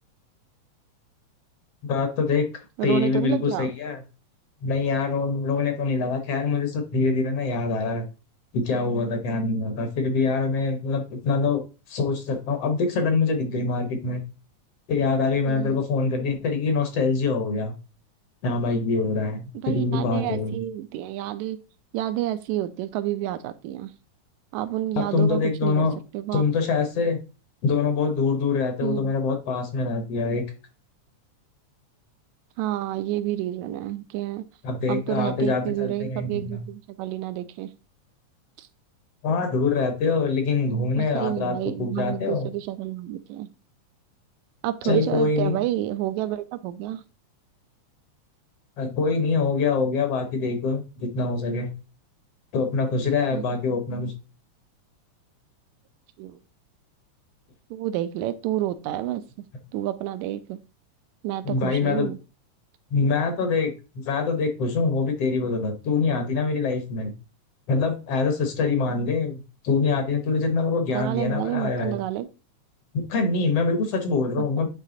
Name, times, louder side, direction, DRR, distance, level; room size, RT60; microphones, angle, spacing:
voice 1, 1.8-2.5 2.8-4.0 4.6-8.1 8.5-11.6 11.9-14.2 14.9-17.7 18.4-20.6 25.0-25.9 26.3-27.2 27.6-30.4 34.6-36.6 39.2-42.5 44.8-45.6 48.8-51.7 52.5-54.1 61.4-62.1 62.9-67.1 67.7-72.0 72.9-74.7, left 4 dB, 65° left, 1.8 m, -24 dB
voice 2, 2.8-3.7 15.5-15.8 19.6-21.6 21.9-23.9 24.5-25.9 26.1-26.4 28.8-29.1 32.6-34.5 34.9-37.7 38.6-38.7 41.0-43.5 44.6-47.0 53.3-53.4 56.2-56.4 57.7-59.2 59.7-60.6 61.2-62.2 70.9-72.3, right 13 dB, 80° right, 1.9 m, -29 dB
9.2 x 3.2 x 3.7 m
omnidirectional pair, 3.3 m